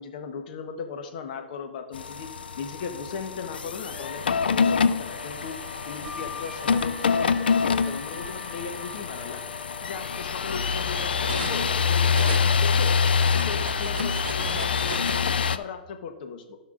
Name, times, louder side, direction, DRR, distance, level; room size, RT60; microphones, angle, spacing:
voice 1, 0.0-5.6 5.9-9.4 9.8-13.0 13.3-16.6, left 5 dB, 60° left, 6 dB, 1.0 m, -37 dB
sound 1, 1.9-15.6, left 6 dB, 85° left, 0.4 m, -26 dB
Wind instrument woodwind instrument, 3.9-11.3, left 1 dB, 5° right, 1.5 m, -44 dB
Cutlery silverware, 5.6-6.9 7.9-8.1 8.5-11.7 12.0-15.2, right 6 dB, 75° right, 0.7 m, -40 dB
15.0 x 5.8 x 2.5 m, 1.1 s
hypercardioid pair, 115°, 5 cm